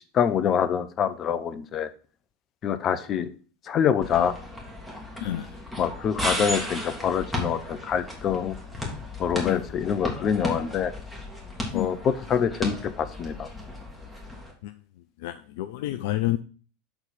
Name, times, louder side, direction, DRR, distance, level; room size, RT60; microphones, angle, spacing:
voice 1, 0.1-1.9 2.6-3.3 3.7-4.3 5.8-8.6 9.2-10.9 11.7-13.5, left 8 dB, 35° left, 0.7 m, -25 dB
sound 1, 4.0-14.5, left 1 dB, 5° left, 2.2 m, -35 dB
voice 2, 15.2-16.4, left 14 dB, 60° left, 0.3 m, -29 dB
6.9 x 4.0 x 5.7 m
figure-of-eight pair, 80°, 0 cm